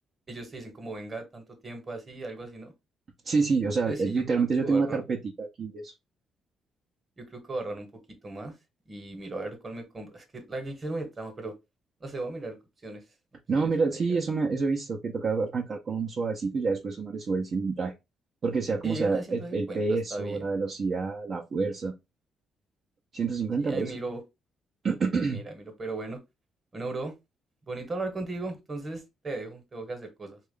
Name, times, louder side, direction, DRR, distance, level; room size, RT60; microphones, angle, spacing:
voice 1, 0.3-2.7 3.8-5.0 7.2-7.9 8.2-8.5 8.9-11.5 12.0-12.6 12.8-13.0 13.5-13.7 14.1-14.2 18.8-20.4 23.6-24.2 25.3-26.2 26.7-27.1 27.7-30.4, right 2 dB, 30° right, 1.2 m, -37 dB
voice 2, 3.2-5.9 13.5-17.9 18.4-21.9 23.1-23.9 24.8-25.4, right 4 dB, 50° right, 0.6 m, -28 dB
3.2 x 2.4 x 3.6 m
cardioid pair, 90°, 0 cm